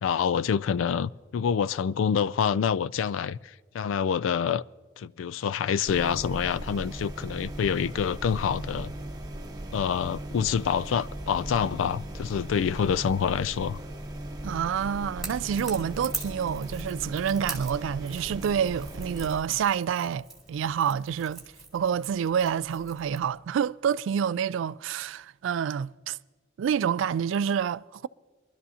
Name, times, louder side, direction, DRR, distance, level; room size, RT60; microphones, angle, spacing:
voice 1, 0.0-4.6 5.0-8.9 9.7-13.8, left 7 dB, 80° left, 0.3 m, -27 dB
sound 1, 5.9-19.4, right 1 dB, 20° right, 1.0 m, -38 dB
voice 2, 14.4-21.4 21.7-26.2 26.6-28.1, right 8 dB, 75° right, 0.3 m, -28 dB
Crackle / Crack, 15.2-23.3, right 3 dB, ahead, 2.5 m, -43 dB
23.0 x 12.0 x 2.8 m
head